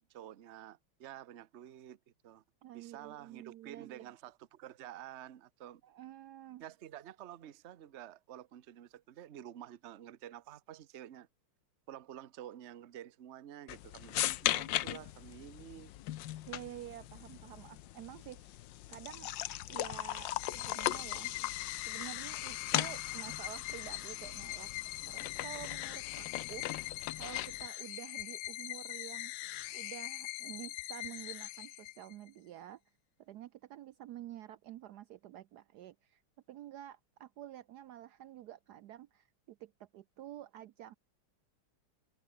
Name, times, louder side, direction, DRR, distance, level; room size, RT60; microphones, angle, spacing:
voice 1, 0.0-2.0 2.2-2.4 2.7-5.8 6.6-11.3 11.9-15.9, right 11 dB, 60° right, 0.7 m, -50 dB
voice 2, 2.6-4.1 5.8-6.6 16.5-18.6 18.9-19.3 19.7-21.3 21.9-24.7 25.0-29.3 29.7-32.8 33.2-36.2 36.5-40.9, right 12 dB, 90° right, 0.8 m, -49 dB
sound 1, 13.7-27.7, left 14 dB, 70° left, 1.2 m, -39 dB
sound 2, 20.4-32.3, left 17 dB, 85° left, 1.6 m, -42 dB
omnidirectional pair, 2.4 m